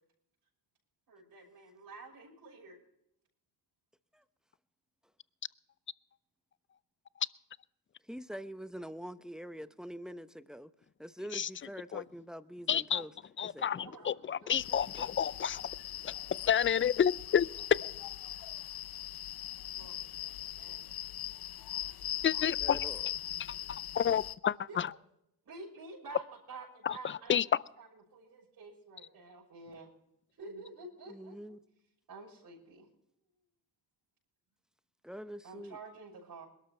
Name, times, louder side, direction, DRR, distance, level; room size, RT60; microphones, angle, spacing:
voice 1, 1.1-2.8 13.8-14.1 14.4-14.6 19.7-20.8 24.7-24.8 25.4-27.4 27.8-29.9 30.4-31.3 32.1-32.9 35.4-36.4, right 3 dB, 55° right, 6.5 m, -49 dB
voice 2, 8.1-10.7 11.0-13.1 13.4-14.0 14.4-15.1 22.6-23.1 31.1-31.6 35.0-35.8, equal, ahead, 0.8 m, -45 dB
voice 3, 12.7-13.0 13.4-15.6 16.0-16.1 16.5-17.5 22.2-22.8 23.7-24.9 26.9-27.4, left 8 dB, 30° left, 0.5 m, -30 dB
sound 1, 14.5-24.4, left 12 dB, 65° left, 0.7 m, -40 dB
21.5 x 12.5 x 3.3 m
cardioid pair, 70°, 40 cm